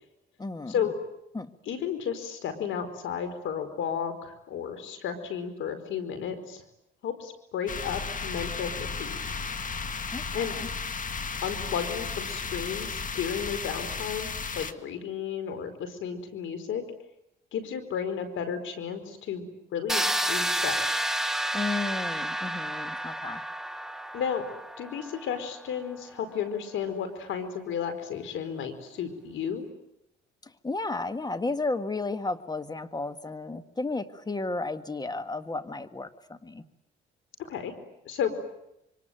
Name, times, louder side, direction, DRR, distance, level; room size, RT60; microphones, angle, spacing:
voice 1, 0.4-0.7 1.3-1.5 10.1-10.7 21.5-23.4 30.4-36.6, left 3 dB, 20° left, 10 dB, 1.9 m, -33 dB
voice 2, 1.7-6.6 7.0-9.2 10.3-10.5 11.4-14.3 14.5-16.8 17.5-20.8 24.1-24.4 24.8-29.7 37.4-37.7 38.0-38.3, left 7 dB, 80° left, 10 dB, 4.7 m, -33 dB
sound 1, 7.7-14.7, left 5 dB, 40° left, 1.8 m, -34 dB
sound 2, 19.9-25.7, right 1 dB, ahead, 1.1 m, -30 dB
26.5 x 24.5 x 9.2 m, 0.85 s
cardioid pair, 90°, 20 cm